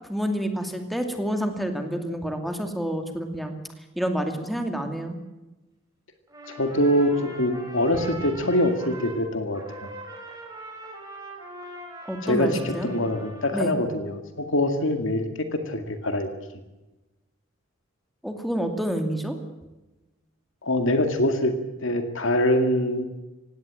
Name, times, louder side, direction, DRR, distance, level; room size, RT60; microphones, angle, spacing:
voice 1, 0.1-3.5 4.0-5.2 12.1-12.9 13.5-13.8 18.2-19.4, equal, ahead, 5 dB, 2.4 m, -28 dB
Trumpet, 6.3-9.2 9.5-13.7, right 1 dB, 20° right, 5.7 m, -41 dB
voice 2, 6.5-9.9 12.2-16.3 20.6-21.5 21.8-23.2, left 1 dB, 65° left, 7 dB, 2.1 m, -24 dB
18.5 x 17.0 x 8.9 m, 1.0 s
head